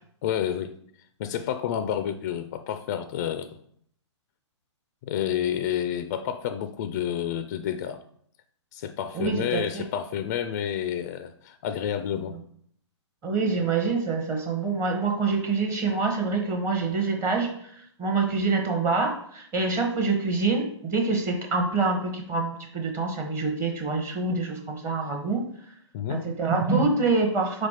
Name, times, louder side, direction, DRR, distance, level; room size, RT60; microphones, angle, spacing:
voice 1, 0.2-0.7 1.2-3.6 5.0-8.0 8.7-12.4 25.9-26.3, left 9 dB, 35° left, 10 dB, 0.3 m, -29 dB
voice 2, 9.1-9.9 13.2-25.4 26.1-27.7, right 4 dB, 20° right, 3 dB, 0.7 m, -26 dB
4.7 x 4.2 x 4.7 m, 0.64 s
hypercardioid pair, 145°, 15 cm